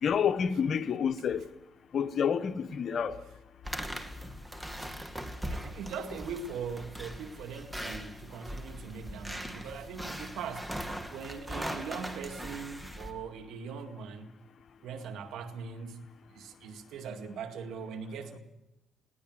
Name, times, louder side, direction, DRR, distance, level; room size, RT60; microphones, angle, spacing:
voice 1, 0.0-1.4 1.9-3.2, left 7 dB, 55° left, 1.2 m, -28 dB
sound 1, 3.6-13.1, equal, 10° right, 2.4 m, -40 dB
voice 2, 5.5-14.3 14.8-18.4, right 6 dB, 80° right, 2.0 m, -41 dB
20.5 x 17.5 x 7.8 m
cardioid pair, 90°, 0 cm